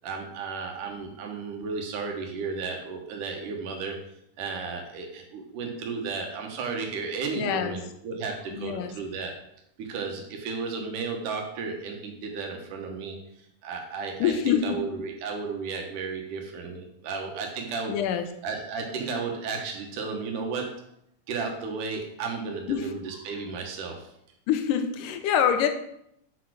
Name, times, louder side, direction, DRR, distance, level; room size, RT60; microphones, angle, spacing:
voice 1, 0.0-4.0 4.4-9.3 9.8-13.2 13.6-18.0 18.4-20.7 21.3-24.1, right 4 dB, 75° right, 2 dB, 2.8 m, -33 dB
voice 2, 7.4-7.8 8.5-8.9 14.2-14.8 17.9-18.3 22.7-22.9 24.5-25.7, left 8 dB, 85° left, 7 dB, 2.2 m, -25 dB
6.3 x 5.7 x 6.3 m, 0.74 s
omnidirectional pair, 3.9 m